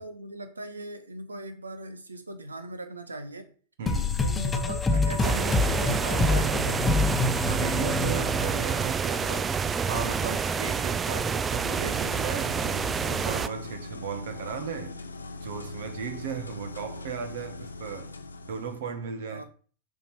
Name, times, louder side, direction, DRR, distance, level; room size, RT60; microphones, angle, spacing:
voice 1, 0.0-3.5 4.2-7.0 19.3-19.4, right 2 dB, 75° right, 1.2 m, -39 dB
voice 2, 3.8-4.3 7.5-15.0 15.4-18.1 18.4-19.4, right 6 dB, 55° right, 1.3 m, -36 dB
sound 1, 3.9-9.2, left 3 dB, 15° left, 0.9 m, -26 dB
sound 2, 5.2-13.5, right 6 dB, 20° right, 0.5 m, -28 dB
sound 3, 11.6-18.8, left 3 dB, 75° left, 0.8 m, -41 dB
7.0 x 5.1 x 5.6 m
figure-of-eight pair, 90°, 0 cm